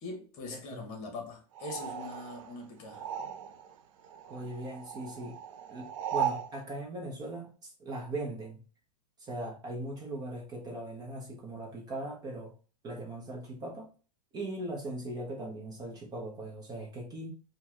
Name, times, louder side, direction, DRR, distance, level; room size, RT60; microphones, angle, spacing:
voice 1, 0.0-3.1, left 3 dB, 35° left, 1.2 m, -42 dB
voice 2, 0.5-0.9 4.3-5.4 5.7-8.6 9.2-12.6 12.8-13.9 14.3-17.3, right 1 dB, 20° right, 0.8 m, -39 dB
sound 1, 1.5-3.8 4.0-6.5, right 9 dB, 55° right, 0.4 m, -37 dB
4.4 x 2.3 x 3.5 m
supercardioid pair, 155°, 21 cm